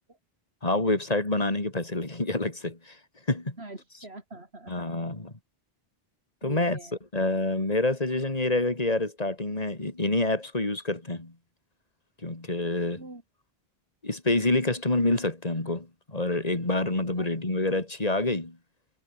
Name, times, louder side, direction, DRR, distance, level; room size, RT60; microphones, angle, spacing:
voice 1, 0.6-3.0 3.3-3.6 4.7-5.3 6.4-6.8 7.1-11.3 12.2-13.0 14.0-18.6, left 2 dB, 40° left, 3.2 m, -27 dB
voice 2, 3.6-4.9 6.4-7.0 13.0-13.2 17.2-17.3, right 2 dB, 90° right, 4.5 m, -44 dB
omnidirectional pair, 1.0 m